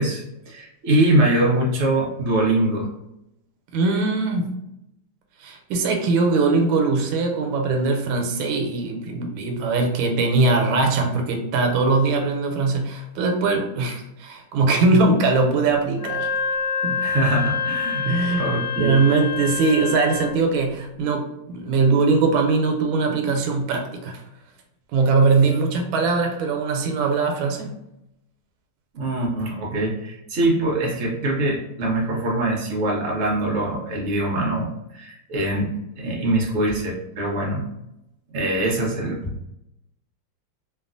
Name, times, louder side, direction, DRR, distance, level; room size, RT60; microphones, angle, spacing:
voice 1, 0.0-2.9 17.0-18.1 18.3-19.0 28.9-37.7 38.3-39.2, right 1 dB, 70° right, -3 dB, 0.6 m, -23 dB
voice 2, 3.7-4.6 5.4-16.3 16.8-17.0 18.0-18.5 18.8-24.2 24.9-27.7, right 3 dB, 85° right, 3 dB, 1.4 m, -21 dB
Wind instrument woodwind instrument, 15.9-20.4, left 6 dB, 55° left, 0.9 m, -27 dB
3.2 x 2.3 x 2.5 m, 0.86 s
omnidirectional pair, 2.1 m